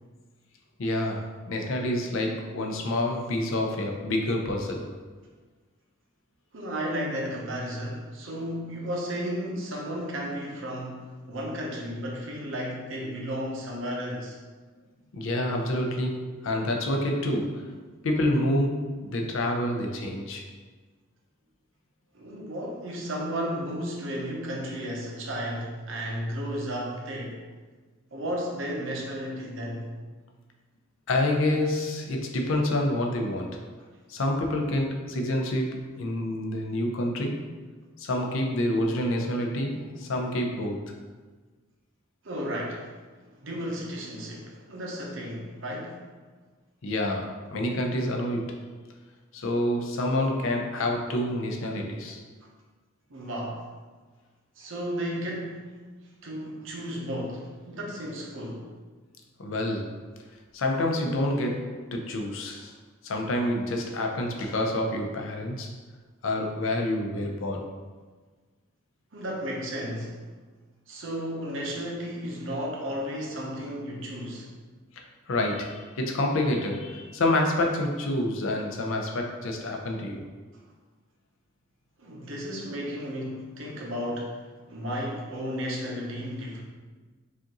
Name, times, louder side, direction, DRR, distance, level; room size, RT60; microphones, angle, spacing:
voice 1, 0.8-5.0 15.1-20.4 31.1-33.7 34.1-37.5 38.0-40.8 46.8-48.7 49.3-52.2 59.4-60.1 60.5-62.7 63.0-65.7 66.2-67.7 74.9-80.3, left 1 dB, 75° left, 2 dB, 0.6 m, -28 dB
voice 2, 6.5-14.4 22.1-27.4 28.1-29.9 42.2-42.9 43.4-46.0 53.1-53.7 54.6-55.7 56.2-58.7 69.1-70.2 70.9-74.5 82.0-84.4 84.7-86.6, equal, 70° right, -1 dB, 0.8 m, -33 dB
4.9 x 2.6 x 2.9 m, 1.4 s
head